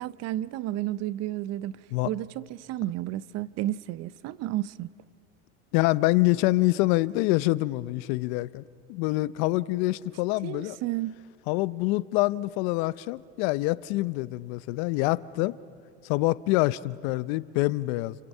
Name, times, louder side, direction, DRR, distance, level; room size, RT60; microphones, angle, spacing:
voice 1, 0.0-1.7 2.0-4.9 10.4-11.2, right 14 dB, 45° right, 0.6 m, -32 dB
voice 2, 5.7-8.6 8.9-10.8 11.5-15.6 16.0-18.2, left 20 dB, 65° left, 0.7 m, -26 dB
29.0 x 27.0 x 5.5 m
supercardioid pair, 105°, 35 cm